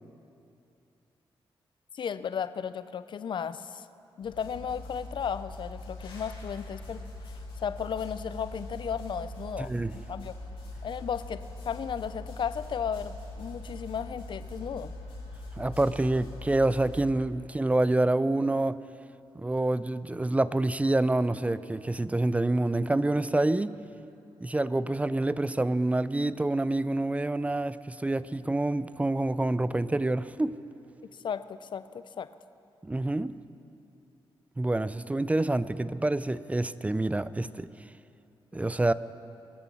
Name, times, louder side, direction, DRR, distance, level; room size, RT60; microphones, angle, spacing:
voice 1, 1.9-3.8 4.2-10.3 10.8-14.9 31.2-32.3, left 7 dB, 55° left, 14 dB, 0.5 m, -35 dB
sound 1, 4.2-17.0, left 1 dB, 80° left, 3.7 m, -42 dB
voice 2, 9.6-9.9 15.6-18.8 19.3-23.8 24.4-30.6 32.8-33.4 34.6-37.7 38.5-38.9, right 2 dB, 15° right, 16 dB, 0.4 m, -27 dB
22.0 x 7.7 x 6.2 m, 2.7 s
cardioid pair, 70°, 9 cm